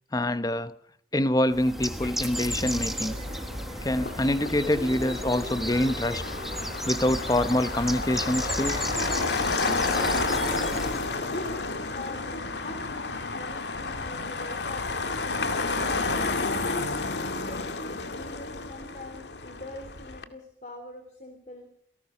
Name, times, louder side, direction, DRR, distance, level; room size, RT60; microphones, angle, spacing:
voice 1, 0.1-0.7 1.1-3.2 3.8-6.2 6.9-8.9, left 1 dB, 20° left, 13 dB, 1.0 m, -25 dB
Motor vehicle (road), 1.5-20.2, left 3 dB, 80° left, 2.1 m, -31 dB
Bird, 1.5-11.2, equal, ahead, 1.2 m, -34 dB
sound 1, 2.6-11.7, right 1 dB, 35° right, 3.1 m, -43 dB
voice 2, 11.3-15.2 15.7-16.9 17.4-21.7, left 2 dB, 40° left, 6 dB, 3.4 m, -42 dB
28.5 x 18.0 x 5.8 m, 0.67 s
head